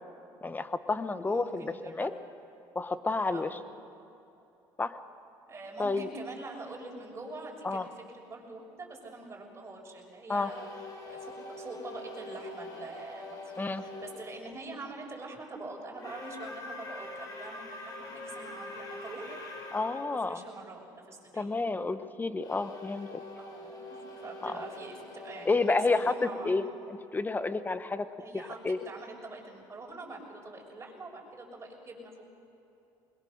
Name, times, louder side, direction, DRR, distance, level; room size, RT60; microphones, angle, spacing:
voice 1, 0.4-2.1 2.7-3.5 4.8-4.9 5.8-6.1 7.6-7.8 10.3-10.5 13.6-13.8 19.7-20.4 21.3-23.2 24.4-24.5 25.5-26.1 26.4-26.6 26.9-28.1 28.6-28.8, left 3 dB, 20° left, 11 dB, 1.2 m, -30 dB
voice 2, 1.2-2.1 3.3-3.7 5.5-7.9 8.1-10.7 11.0-19.4 20.0-20.8 21.1-21.5 23.4-26.7 28.2-32.2, right 2 dB, 30° right, 0 dB, 6.0 m, -44 dB
sound 1, 10.4-14.2 15.9-20.1 22.4-27.2, left 2 dB, 40° left, 5.4 m, -44 dB
21.5 x 21.5 x 6.7 m, 2.8 s
supercardioid pair, 85°, 9 cm